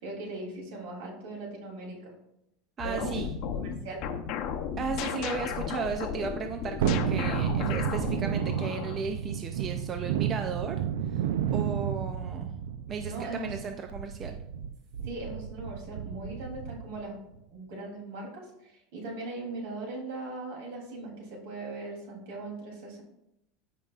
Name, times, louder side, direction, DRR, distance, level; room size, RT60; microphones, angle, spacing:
voice 1, 0.0-2.1 2.8-3.3 3.8-4.0 13.0-13.6 15.0-17.2 17.5-23.0, right 2 dB, 65° right, -1 dB, 3.0 m, -39 dB
sound 1, 2.8-9.0, left 7 dB, 45° left, 0.7 m, -34 dB
voice 2, 2.8-3.3 4.8-10.8 11.1-11.3 11.5-12.5 12.9-14.4, right 5 dB, 20° right, 5 dB, 0.4 m, -35 dB
Thunderstorm, 6.8-17.0 17.4-17.5, right 9 dB, 85° right, 0.5 m, -31 dB
14.0 x 5.3 x 2.4 m, 0.81 s
supercardioid pair, 175°, 0 cm